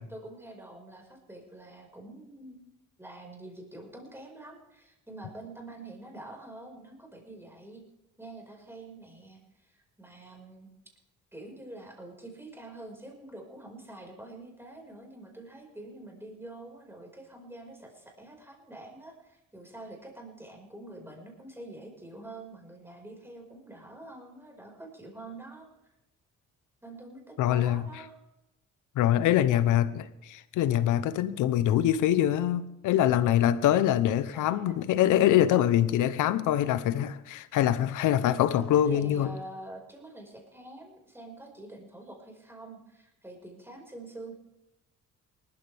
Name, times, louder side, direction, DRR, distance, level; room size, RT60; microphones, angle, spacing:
voice 1, 0.1-2.6 3.0-7.8 8.2-10.7 11.3-25.7 26.8-28.1 34.3-34.8 38.5-44.3, right 2 dB, 10° right, 5.2 m, -46 dB
voice 2, 27.4-27.9 28.9-39.3, left 11 dB, 90° left, 0.9 m, -24 dB
19.5 x 13.5 x 3.5 m
cardioid pair, 90°, 30 cm